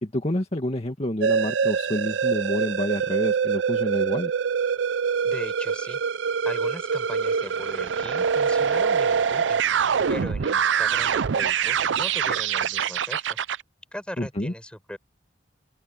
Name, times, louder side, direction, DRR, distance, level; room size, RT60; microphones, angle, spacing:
voice 1, 0.0-4.3 14.2-14.5, left 1 dB, 35° left, 2.1 m, -28 dB
sound 1, 1.2-13.6, right 6 dB, 85° right, 0.5 m, -24 dB
voice 2, 5.2-6.0 6.4-9.6 10.1-13.4 13.9-15.0, equal, 5° left, 5.6 m, -38 dB
open air
head